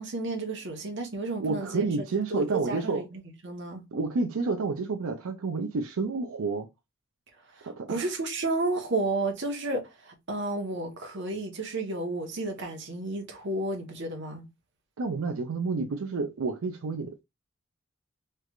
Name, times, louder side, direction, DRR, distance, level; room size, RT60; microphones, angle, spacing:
voice 1, 0.0-1.8 2.3-3.8 7.6-14.5, right 2 dB, 55° right, 1.0 m, -32 dB
voice 2, 1.4-3.0 3.9-6.7 7.6-8.0 15.0-17.2, right 4 dB, 85° right, 0.5 m, -30 dB
3.3 x 3.2 x 2.4 m
head